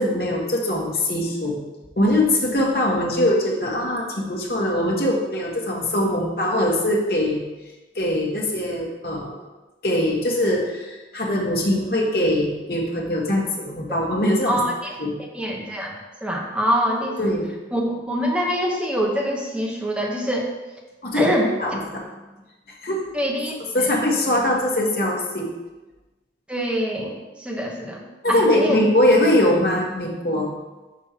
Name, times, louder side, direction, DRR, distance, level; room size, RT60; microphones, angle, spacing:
voice 1, 0.0-1.6 2.0-7.4 7.9-9.4 9.8-14.6 15.0-15.2 17.2-17.6 21.0-22.0 22.8-23.1 23.7-25.5 28.2-30.5, left 1 dB, 55° left, -2 dB, 1.4 m, -22 dB
voice 2, 14.5-15.0 15.3-15.9 16.2-17.2 17.7-20.5 21.1-21.5 23.1-23.9 26.5-28.0 28.3-28.8, equal, 5° right, -1 dB, 1.0 m, -24 dB
6.3 x 5.4 x 4.4 m, 1.1 s
head